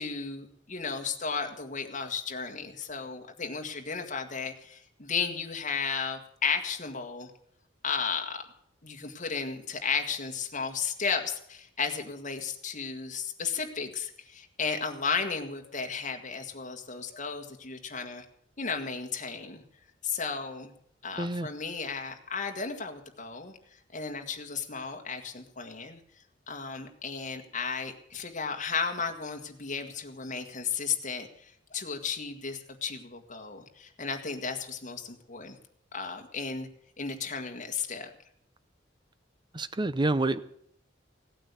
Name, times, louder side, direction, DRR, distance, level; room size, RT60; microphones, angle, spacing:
voice 1, 0.0-7.3 7.8-8.4 8.8-18.2 18.6-19.6 20.0-20.7 21.0-23.6 23.9-26.0 26.5-35.6 35.9-36.7 37.0-38.1, left 5 dB, 40° left, 4 dB, 1.8 m, -34 dB
voice 2, 21.2-21.5 39.5-40.4, right 2 dB, 25° right, 14 dB, 0.7 m, -28 dB
17.0 x 9.1 x 8.3 m, 0.69 s
head